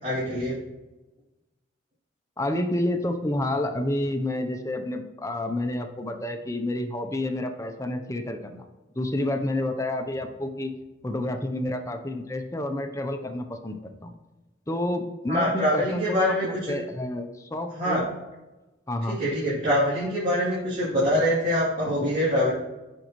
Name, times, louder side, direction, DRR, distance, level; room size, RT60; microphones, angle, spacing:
voice 1, 0.0-0.6 15.3-16.7 17.8-18.0 19.1-22.5, equal, 50° right, -11 dB, 3.1 m, -24 dB
voice 2, 2.4-8.6 9.0-10.7 11.0-14.1 14.7-18.1 18.9-19.2, left 1 dB, 15° left, 6 dB, 0.7 m, -29 dB
15.0 x 5.3 x 3.1 m, 1.1 s
head